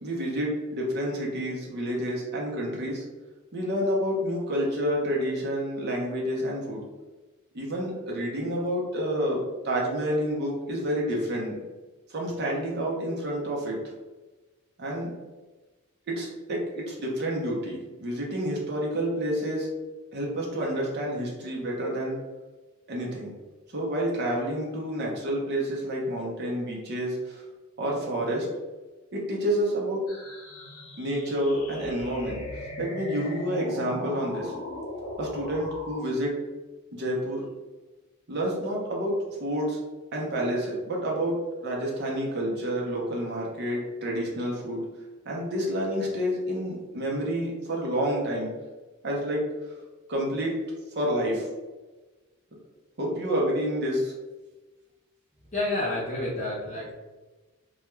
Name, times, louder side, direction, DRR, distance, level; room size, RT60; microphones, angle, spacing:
voice 1, 0.0-3.0 3.5-6.8 7.5-11.6 12.1-13.8 14.8-15.1 16.1-19.7 20.1-22.2 22.9-23.3 23.7-27.4 27.8-28.5 29.1-30.0 31.0-32.4 32.8-34.5 35.2-36.3 36.9-37.4 38.3-39.1 39.4-39.8 40.1-41.4 41.6-44.8 45.3-48.5 49.0-49.4 50.1-50.6 50.9-51.5 53.0-54.1, equal, 50° right, -2 dB, 0.6 m, -29 dB
sound 1, 30.1-36.1, left 1 dB, 80° left, 0.6 m, -39 dB
voice 2, 55.5-56.9, left 2 dB, 35° left, -7 dB, 0.5 m, -29 dB
2.2 x 2.2 x 3.0 m, 1.2 s
head